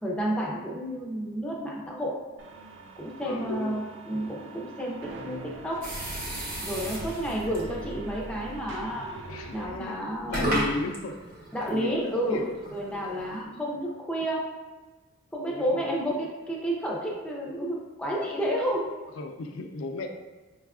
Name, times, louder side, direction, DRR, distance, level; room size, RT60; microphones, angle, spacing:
voice 1, 0.0-2.1 3.0-5.8 6.6-9.1 9.5-10.6 11.5-12.4 12.7-14.4 15.3-19.0, equal, 5° left, -4 dB, 0.4 m, -31 dB
sound 1, 2.4-9.7, right 2 dB, 65° right, 0.4 m, -42 dB
voice 2, 3.2-3.8 9.3-10.0 10.3-11.2 11.6-12.6 15.5-16.0 19.2-20.1, left 3 dB, 85° left, 4 dB, 0.4 m, -35 dB
sound 2, 5.8-7.7 8.6-8.9 9.5-9.6 10.2-13.4, equal, 45° right, 0.9 m, -34 dB
4.9 x 2.3 x 2.3 m, 1.3 s
head